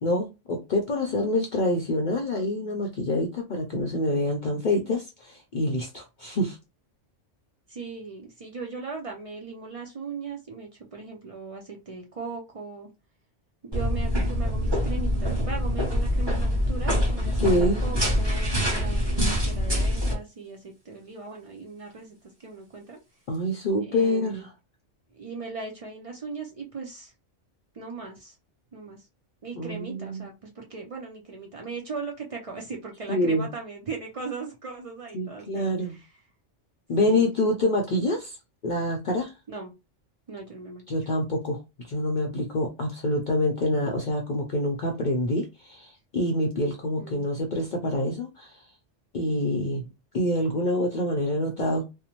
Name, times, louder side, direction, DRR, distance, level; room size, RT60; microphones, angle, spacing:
voice 1, 0.0-6.6 17.3-17.8 23.3-24.5 29.6-30.3 33.1-33.5 35.1-35.9 36.9-38.4 38.6-39.3 40.9-41.6 41.9-48.6 49.1-49.9 50.1-51.9, left 1 dB, 55° left, 0.5 m, -26 dB
voice 2, 7.7-12.9 13.6-23.0 23.8-24.5 25.1-27.1 27.7-28.4 28.7-29.0 29.4-36.0 37.0-37.2 39.5-39.7 40.3-40.8 47.0-47.4, right 4 dB, 65° right, 0.3 m, -38 dB
sound 1, 13.7-20.1, equal, 25° right, 0.8 m, -25 dB
2.6 x 2.1 x 2.9 m
omnidirectional pair, 1.2 m